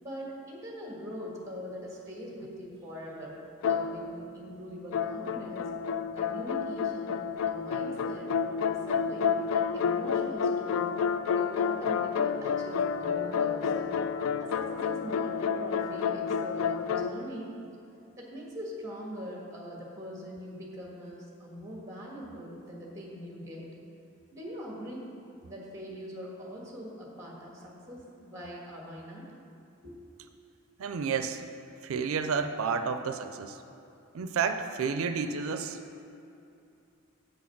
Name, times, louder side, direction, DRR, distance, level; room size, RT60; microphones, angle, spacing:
voice 1, 0.0-3.4 3.7-5.6 6.1-10.9 11.3-14.0 14.4-17.6 18.2-23.7 24.3-25.1 25.4-29.2 29.8-30.0, equal, 15° right, -2 dB, 1.5 m, -42 dB
sound 1, 3.6-4.5 4.9-17.1, left 6 dB, 85° left, 0.3 m, -30 dB
voice 2, 30.8-31.4 31.8-33.6 34.1-35.8, right 5 dB, 90° right, 8 dB, 0.4 m, -31 dB
7.8 x 6.3 x 5.8 m, 2.8 s
head